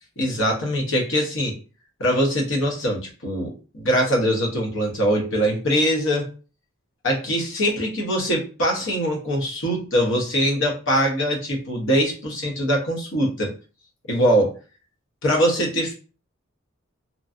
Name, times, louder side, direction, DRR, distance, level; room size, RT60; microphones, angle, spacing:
voice 1, 0.2-1.6 2.0-6.3 7.0-13.5 14.1-14.6 15.2-15.9, equal, 65° left, 0 dB, 0.9 m, -22 dB
3.0 x 2.5 x 2.5 m, 0.35 s
head